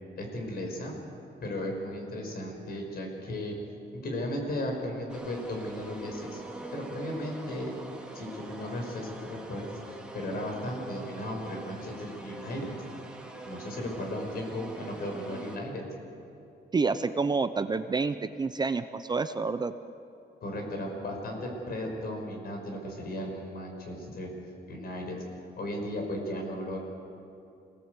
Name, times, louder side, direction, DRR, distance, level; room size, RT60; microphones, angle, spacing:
voice 1, 0.2-0.9 1.4-3.6 3.9-6.4 6.7-7.7 8.1-12.7 13.4-15.8 20.4-24.3 24.7-25.2 25.6-26.8, left 1 dB, 60° left, 2 dB, 5.9 m, -35 dB
sound 1, 5.1-15.6, right 2 dB, 5° right, 2.5 m, -44 dB
voice 2, 16.7-19.7, right 4 dB, 25° right, 10 dB, 0.6 m, -28 dB
27.5 x 18.5 x 8.2 m, 2.7 s
cardioid pair, 145°, 18 cm